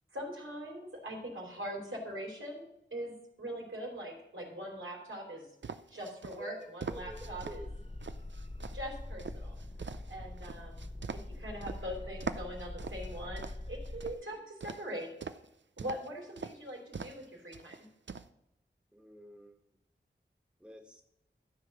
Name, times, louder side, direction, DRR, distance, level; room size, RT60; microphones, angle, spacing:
voice 1, 0.1-2.6 2.9-5.5 5.9-7.6 8.7-9.6 10.1-15.1 15.8-17.9, equal, 85° right, -1 dB, 3.2 m, -42 dB
sound 1, 5.6-7.6 8.0-11.8 12.2-14.2 14.6-15.5 15.8-16.1 16.4-16.5 16.9-17.3 17.5-18.3, right 5 dB, 70° right, 0.6 m, -42 dB
voice 2, 6.4-7.7 14.2-14.4 18.9-19.6 20.6-21.0, equal, 5° right, 3 dB, 1.5 m, -49 dB
sound 2, 6.9-14.1, left 1 dB, 30° left, 0.8 m, -44 dB
13.0 x 4.9 x 6.2 m, 0.84 s
wide cardioid pair, 40°, 20 cm